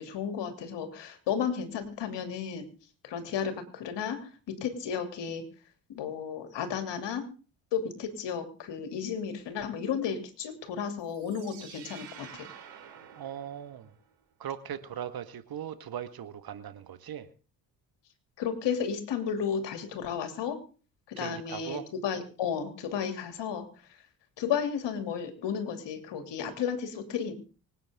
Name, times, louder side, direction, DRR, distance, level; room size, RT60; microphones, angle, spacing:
voice 1, 0.0-2.7 3.0-5.5 5.9-7.3 7.7-12.5 18.4-20.6 21.1-24.0 24.4-27.3, left 7 dB, 60° left, 7 dB, 3.0 m, -33 dB
sound 1, 11.0-14.1, right 9 dB, 75° right, 3.8 m, -49 dB
voice 2, 13.2-13.9 14.4-17.3 21.2-21.9, right 9 dB, 50° right, 11 dB, 1.8 m, -39 dB
25.0 x 9.2 x 3.7 m, 0.37 s
hypercardioid pair, 55°, 47 cm